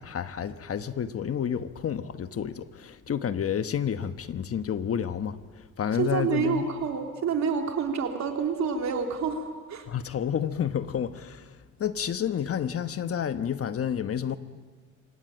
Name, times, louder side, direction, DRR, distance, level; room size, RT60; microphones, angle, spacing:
voice 1, 0.0-6.6 9.9-11.5 11.8-14.4, left 8 dB, 50° left, 1.1 m, -30 dB
voice 2, 6.0-9.9, right 6 dB, 65° right, 3.4 m, -28 dB
26.5 x 17.5 x 8.8 m
cardioid pair, 90°, 30 cm